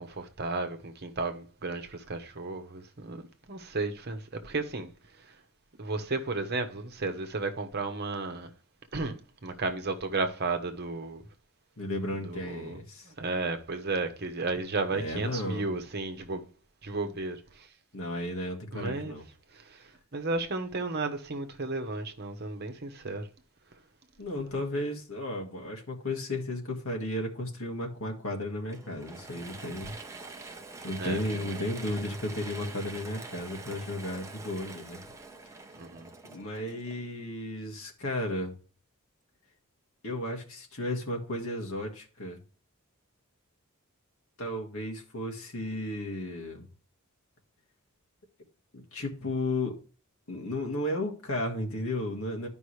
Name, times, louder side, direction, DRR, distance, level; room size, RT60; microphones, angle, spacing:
voice 1, 0.0-4.9 5.2-5.4 5.8-8.5 8.9-11.2 12.2-16.5 16.8-17.7 18.7-19.1 19.5-23.3 31.0-31.6 35.7-36.1, right 3 dB, 45° right, 1.1 m, -34 dB
voice 2, 11.8-13.1 14.9-15.7 17.9-19.2 24.2-30.0 30.8-35.0 35.5-35.6 36.3-38.5 40.0-42.4 44.4-46.7 48.9-49.7 50.3-52.5, left 1 dB, 70° left, 1.9 m, -34 dB
Mechanisms / Drill, 28.7-37.3, right 3 dB, 15° right, 0.7 m, -45 dB
11.0 x 5.3 x 3.2 m
head